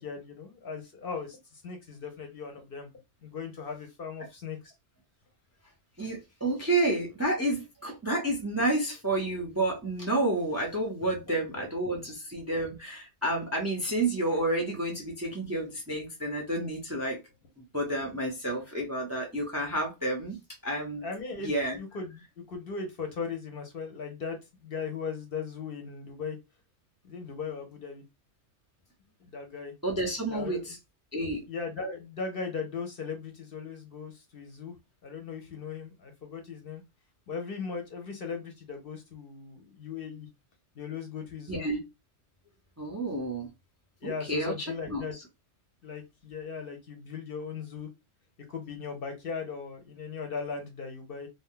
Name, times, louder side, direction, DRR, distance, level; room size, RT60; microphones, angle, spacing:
voice 1, 0.0-2.9 3.2-4.7 11.3-11.7 21.0-26.4 27.0-28.0 29.2-29.7 30.3-30.7 31.5-34.7 35.0-36.8 37.3-40.3 40.8-41.7 44.0-45.1 45.8-47.9 48.5-51.3, left 5 dB, 55° left, 0.8 m, -38 dB
voice 2, 6.0-17.2 17.6-20.4 20.6-21.0 21.4-21.8 29.8-30.7 31.1-31.4 41.5-41.8 42.8-43.5 44.0-44.5 44.9-45.0, right 2 dB, 20° right, 0.5 m, -30 dB
2.6 x 2.1 x 3.5 m
omnidirectional pair, 1.3 m